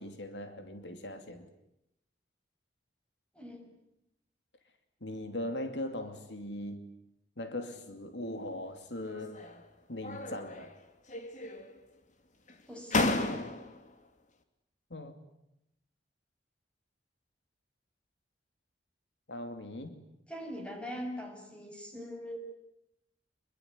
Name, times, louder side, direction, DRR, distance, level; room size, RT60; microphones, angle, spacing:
voice 1, 0.0-1.5 5.0-6.8 7.4-9.4 9.9-10.7 14.9-15.1 19.3-20.0, left 1 dB, 75° left, 8 dB, 2.8 m, -39 dB
voice 2, 3.3-3.7 12.7-13.4 20.3-22.4, equal, 5° left, 3 dB, 6.6 m, -42 dB
sound 1, 9.1-9.7 10.0-10.8 11.1-11.9 12.5-12.6 12.9-13.9, left 2 dB, 45° left, 2.7 m, -33 dB
27.0 x 22.5 x 9.7 m, 0.83 s
head